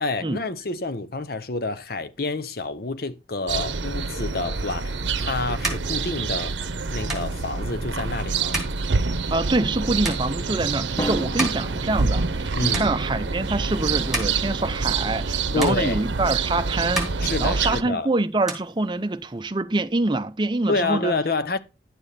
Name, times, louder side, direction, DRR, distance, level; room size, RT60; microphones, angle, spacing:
voice 1, 0.0-6.5 6.9-8.6 12.5-12.9 15.5-16.0 17.2-18.1 20.7-21.6, left 3 dB, 50° left, 0.8 m, -28 dB
sound 1, 3.5-17.8, right 4 dB, 80° right, 0.8 m, -27 dB
sound 2, 5.5-12.4 12.7-13.4 13.8-15.3 15.6-16.5 16.8-18.0 18.3-19.4, right 2 dB, ahead, 2.5 m, -34 dB
voice 2, 9.3-21.1, right 2 dB, 25° right, 0.5 m, -25 dB
Drum, 11.0-13.0, equal, 15° left, 1.1 m, -34 dB
11.0 x 7.0 x 4.2 m
head